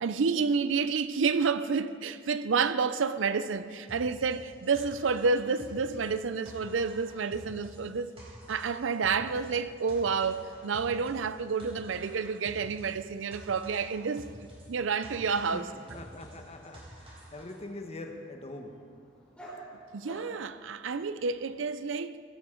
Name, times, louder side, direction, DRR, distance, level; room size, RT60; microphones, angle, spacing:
voice 1, 0.0-8.1 8.5-15.7 19.9-22.2, right 5 dB, 85° right, 0.5 m, -29 dB
sound 1, 3.9-17.6, right 1 dB, 30° right, 4.1 m, -49 dB
voice 2, 15.9-18.7, left 2 dB, 35° left, 1.2 m, -43 dB
Dog, 16.3-21.6, right 1 dB, 5° left, 4.1 m, -52 dB
16.5 x 14.0 x 3.8 m
head